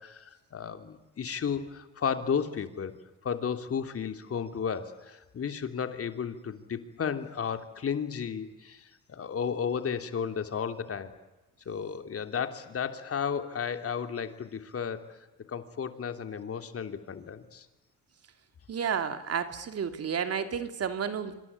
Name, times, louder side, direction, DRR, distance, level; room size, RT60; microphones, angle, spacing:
voice 1, 0.0-2.9 3.2-11.1 11.6-15.2 15.5-17.7, left 7 dB, 50° left, 8 dB, 3.2 m, -33 dB
voice 2, 18.7-21.4, right 7 dB, 55° right, 9 dB, 2.9 m, -31 dB
26.5 x 26.5 x 8.5 m, 1.0 s
cardioid pair, 90°, 30 cm